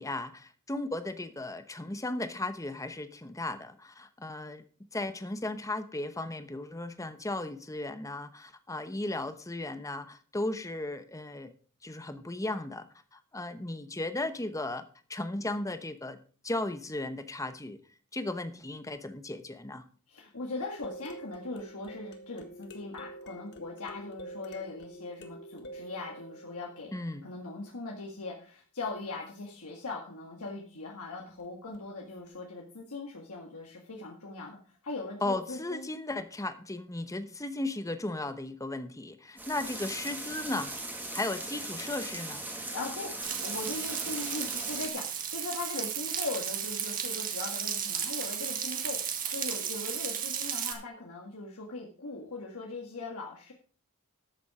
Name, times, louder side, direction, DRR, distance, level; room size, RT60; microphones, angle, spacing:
voice 1, 0.0-4.6 4.9-11.5 11.8-12.9 13.1-16.2 16.4-17.8 18.1-19.8 26.9-27.3 35.2-40.7 41.1-42.4, left 2 dB, 15° left, 10 dB, 0.9 m, -36 dB
voice 2, 20.1-26.9 27.2-35.9 42.7-53.5, left 3 dB, 75° left, -1 dB, 1.8 m, -40 dB
sound 1, 20.6-27.5 31.7-31.8 32.3-32.4, right 1 dB, 50° left, 1.6 m, -47 dB
sound 2, 39.4-44.9, right 2 dB, 10° right, 1.9 m, -39 dB
Frying (food), 43.2-50.7, right 8 dB, 40° right, 1.7 m, -34 dB
13.0 x 7.1 x 4.9 m, 0.42 s
head